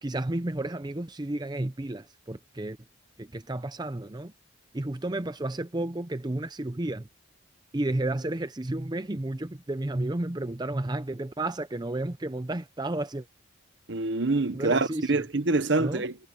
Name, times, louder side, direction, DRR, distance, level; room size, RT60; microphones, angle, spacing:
voice 1, 0.0-2.8 3.2-4.3 4.7-7.1 7.7-13.3 14.5-15.2 15.8-16.0, right 1 dB, 20° right, 0.6 m, -32 dB
voice 2, 13.9-16.2, right 3 dB, 60° right, 1.0 m, -26 dB
head